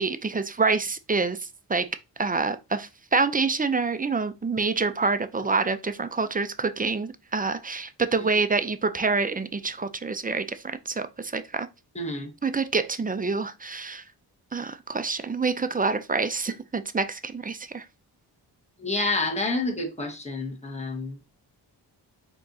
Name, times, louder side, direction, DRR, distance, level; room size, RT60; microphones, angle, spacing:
voice 1, 0.0-1.9 2.2-11.7 12.4-14.0 14.5-17.8, right 4 dB, 20° right, 0.4 m, -27 dB
voice 2, 11.9-12.3 18.8-21.2, left 2 dB, 15° left, 1.3 m, -29 dB
4.6 x 3.8 x 2.7 m
cardioid pair, 70°, 43 cm